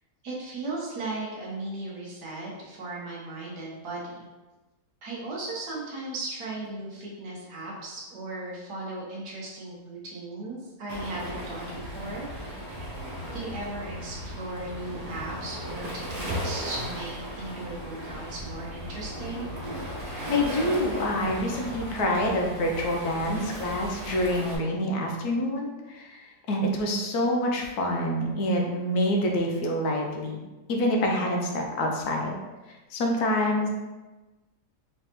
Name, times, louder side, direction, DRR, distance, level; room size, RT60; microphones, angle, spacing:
voice 1, 0.2-4.3 5.0-12.8 13.3-19.5, right 2 dB, 80° right, -4 dB, 1.6 m, -37 dB
Waves surf, 10.9-24.6, equal, 45° right, 0.7 m, -36 dB
voice 2, 20.3-30.4 30.7-32.4 32.9-33.7, left 1 dB, 75° left, 1 dB, 1.2 m, -26 dB
3.8 x 3.3 x 2.9 m, 1.2 s
omnidirectional pair, 1.7 m